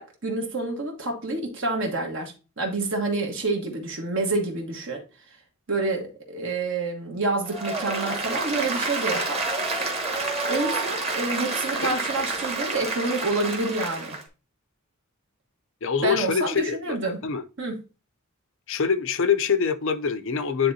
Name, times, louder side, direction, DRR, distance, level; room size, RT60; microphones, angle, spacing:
voice 1, 0.0-5.0 5.7-9.4 10.5-14.2 16.0-17.2 17.6-17.8, right 2 dB, 55° right, 1.4 m, -28 dB
Applause, 7.5-14.2, right 3 dB, 25° right, 1.3 m, -29 dB
voice 2, 15.8-17.0 17.2-17.4 18.7-20.7, left 6 dB, 60° left, 0.6 m, -24 dB
9.8 x 3.6 x 2.7 m
head